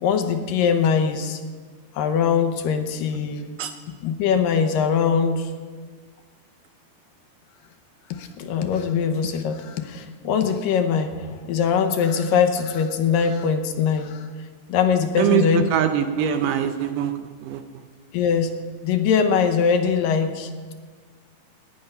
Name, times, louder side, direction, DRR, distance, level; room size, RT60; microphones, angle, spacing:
voice 1, 0.0-1.4 2.0-3.5 4.0-5.5 8.1-14.2 14.7-15.6 18.1-18.5 18.8-20.7, left 6 dB, 75° left, 7 dB, 2.4 m, -22 dB
voice 2, 15.2-17.1 17.4-17.6, right 9 dB, 80° right, 8 dB, 2.1 m, -22 dB
18.5 x 9.3 x 5.5 m, 1.5 s
omnidirectional pair, 4.2 m